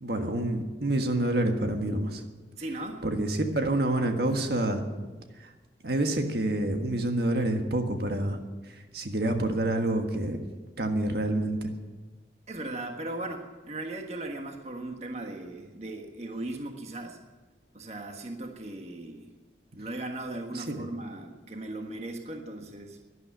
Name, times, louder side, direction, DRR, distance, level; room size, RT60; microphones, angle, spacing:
voice 1, 0.0-2.2 3.0-4.8 5.4-5.5 5.8-8.4 8.7-10.4 10.8-11.7 20.5-20.9, right 1 dB, 65° right, 5 dB, 1.5 m, -28 dB
voice 2, 2.6-3.0 12.5-17.2 17.7-19.3 19.7-23.0, right 2 dB, 40° right, 3 dB, 1.4 m, -37 dB
12.0 x 11.5 x 9.4 m, 1.3 s
head